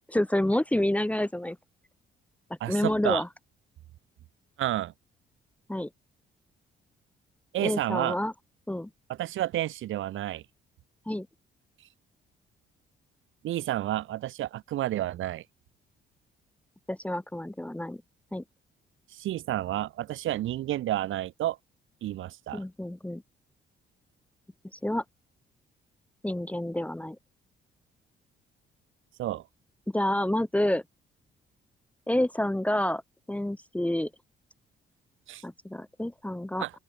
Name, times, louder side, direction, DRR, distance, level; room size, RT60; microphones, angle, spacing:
voice 1, 0.1-1.6 2.7-3.3 5.7-5.9 7.6-8.3 8.7-8.9 11.1-11.3 16.9-18.0 18.3-18.4 22.5-23.2 24.7-25.0 26.2-27.2 29.9-30.8 32.1-33.0 33.3-34.1 35.4-36.6, left 1 dB, 5° left, 1.1 m, -28 dB
voice 2, 2.6-3.2 4.6-4.9 7.5-8.2 9.1-10.4 13.4-15.4 19.1-21.6 22.0-22.6 29.2-29.4 35.3-35.4 36.6-36.7, right 14 dB, 80° right, 4.0 m, -30 dB
open air
cardioid pair, 90°, 20 cm